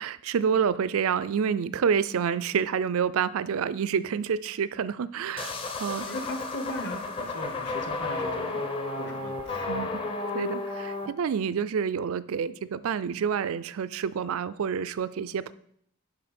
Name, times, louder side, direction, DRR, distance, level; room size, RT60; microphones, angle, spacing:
voice 1, 0.0-5.5 5.8-6.1 9.7-9.9 10.3-15.5, right 7 dB, 80° right, 16 dB, 0.4 m, -28 dB
sound 1, 5.4-11.1, left 3 dB, 25° left, 0.7 m, -33 dB
voice 2, 6.1-8.7 9.0-9.6, left 1 dB, 50° left, 4 dB, 1.3 m, -37 dB
11.0 x 4.5 x 4.3 m, 0.69 s
head